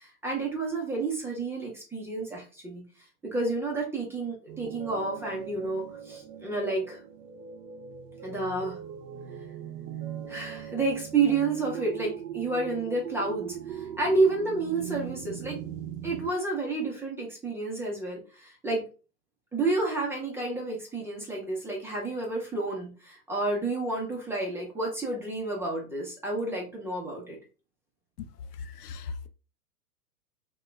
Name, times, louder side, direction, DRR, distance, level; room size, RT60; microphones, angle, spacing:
voice 1, 0.0-2.8 3.2-7.0 8.2-8.8 10.3-15.6 16.0-18.8 19.5-27.4, right 3 dB, 5° right, 0.6 m, -30 dB
sound 1, 4.5-16.3, right 9 dB, 85° right, 0.6 m, -40 dB
voice 2, 28.6-29.3, left 5 dB, 70° left, 0.6 m, -38 dB
2.9 x 2.3 x 3.2 m
hypercardioid pair, 110°, 48 cm